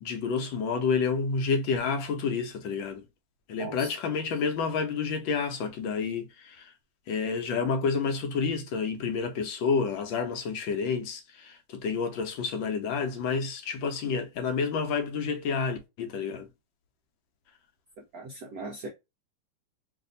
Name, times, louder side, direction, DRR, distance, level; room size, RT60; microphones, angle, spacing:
voice 1, 0.0-3.0 3.5-6.7 7.1-16.5, left 5 dB, 70° left, 1.3 m, -29 dB
voice 2, 3.6-3.9 18.1-18.9, right 2 dB, 75° right, 0.8 m, -39 dB
3.3 x 2.6 x 3.9 m
omnidirectional pair, 2.4 m